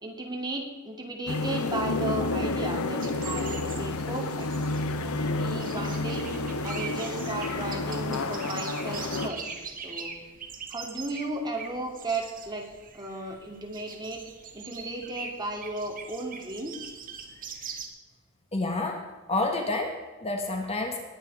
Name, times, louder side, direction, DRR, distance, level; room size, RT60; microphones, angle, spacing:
voice 1, 0.0-4.5 5.0-6.3 6.6-9.5 9.8-10.1 10.7-12.7 12.9-14.2 14.5-16.9, right 2 dB, 20° right, 0 dB, 2.7 m, -35 dB
sound 1, 1.3-9.3, left 2 dB, 80° left, 1.0 m, -30 dB
sound 2, 3.0-17.9, right 6 dB, 40° right, 1.9 m, -42 dB
voice 2, 18.5-19.0 19.3-21.0, left 2 dB, 30° left, 3 dB, 1.5 m, -29 dB
21.0 x 8.3 x 4.8 m, 1.3 s
head